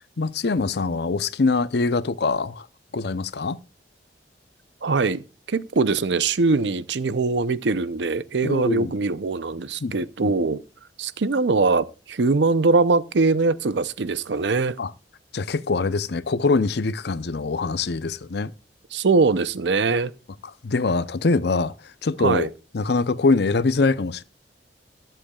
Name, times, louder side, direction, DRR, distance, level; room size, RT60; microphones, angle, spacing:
voice 1, 0.2-2.7 2.9-3.6 8.4-8.9 9.8-9.9 10.2-10.3 14.8-14.9 15.3-18.5 20.6-22.5 22.7-24.2, left 3 dB, 65° left, 0.6 m, -23 dB
voice 2, 4.8-10.6 11.0-14.8 18.9-20.1 22.2-22.5, right 3 dB, 75° right, 0.6 m, -22 dB
21.5 x 7.8 x 2.3 m
head